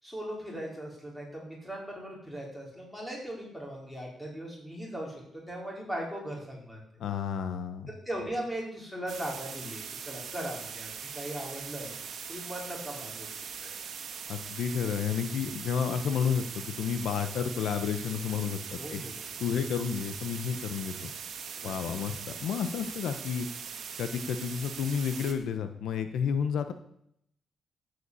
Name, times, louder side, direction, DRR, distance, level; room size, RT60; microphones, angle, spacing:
voice 1, 0.0-6.8 8.0-11.9 12.3-13.7 18.8-19.1 21.6-21.7, right 1 dB, 5° left, -2 dB, 4.9 m, -39 dB
voice 2, 7.0-7.9 14.3-19.0 19.4-21.1 21.6-23.5 24.0-26.7, left 7 dB, 80° left, 9 dB, 1.0 m, -31 dB
sound 1, 9.1-25.3, right 7 dB, 55° right, 1.9 m, -41 dB
12.5 x 8.4 x 8.3 m, 0.74 s
cardioid pair, 145°, 0 cm